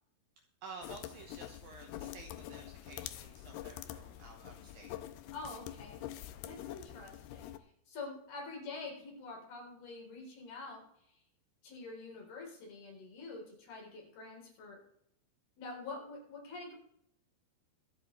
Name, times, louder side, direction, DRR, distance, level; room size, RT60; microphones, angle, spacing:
voice 1, 0.6-5.0, right 4 dB, 70° right, 3 dB, 2.4 m, -51 dB
sound 1, 0.8-7.6, left 13 dB, 85° left, 2.2 m, -46 dB
voice 2, 5.3-6.0 6.4-7.5 7.9-10.8 11.6-14.8 15.6-16.8, left 3 dB, 60° left, -1 dB, 5.4 m, -46 dB
24.0 x 8.3 x 3.2 m, 0.72 s
omnidirectional pair, 5.2 m